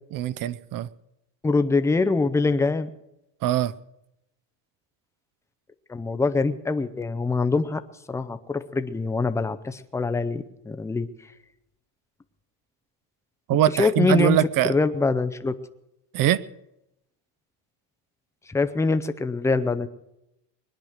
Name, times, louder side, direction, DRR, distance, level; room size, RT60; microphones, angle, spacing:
voice 1, 0.1-0.9 3.4-3.7 13.5-14.7 16.1-16.4, right 12 dB, 45° right, 0.6 m, -22 dB
voice 2, 1.4-2.9 5.9-7.8 8.1-11.1 13.8-15.5 18.5-19.9, left 3 dB, 5° left, 0.5 m, -24 dB
21.0 x 10.5 x 6.5 m
cardioid pair, 145°, 48 cm